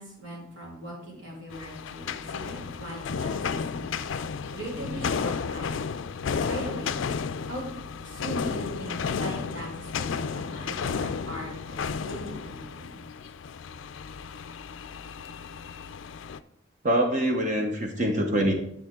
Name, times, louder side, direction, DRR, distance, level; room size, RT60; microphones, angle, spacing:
voice 1, 0.0-4.1 4.5-5.9 6.4-7.0 7.5-7.8 8.0-13.0, equal, 75° right, -4 dB, 3.5 m, -39 dB
sound 1, 1.5-16.4, left 6 dB, 75° left, 0.4 m, -33 dB
voice 2, 16.8-18.5, right 1 dB, 40° right, 3 dB, 0.9 m, -24 dB
10.5 x 6.9 x 3.7 m, 0.79 s
head